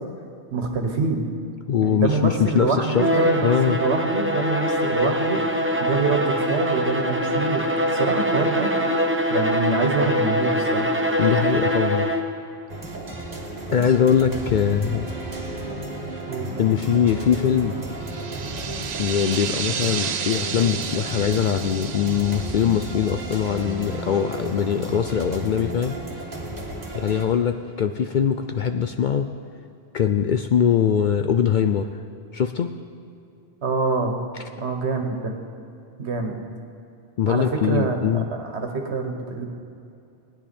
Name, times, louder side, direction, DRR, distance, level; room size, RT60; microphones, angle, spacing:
voice 1, 0.5-1.2 1.8-5.4 5.8-7.6 7.9-8.7 9.3-10.9 14.3-14.4 16.3-16.5 33.6-34.2 34.6-35.3 36.0-36.4 37.3-39.5, right 4 dB, 70° right, 3 dB, 1.6 m, -25 dB
voice 2, 1.7-3.1 3.4-3.8 11.2-12.1 13.7-15.1 16.6-17.8 19.0-26.0 26.9-29.3 29.9-31.9 32.3-32.8 37.2-38.3, left 8 dB, 60° left, 7 dB, 0.5 m, -22 dB
Bowed string instrument, 2.9-12.4, equal, 15° right, 0.7 m, -23 dB
sound 1, 12.7-27.3, right 2 dB, 40° right, 1.5 m, -33 dB
sound 2, 18.0-24.3, right 8 dB, 55° right, 0.5 m, -32 dB
19.5 x 10.5 x 4.3 m, 2.6 s
omnidirectional pair, 1.2 m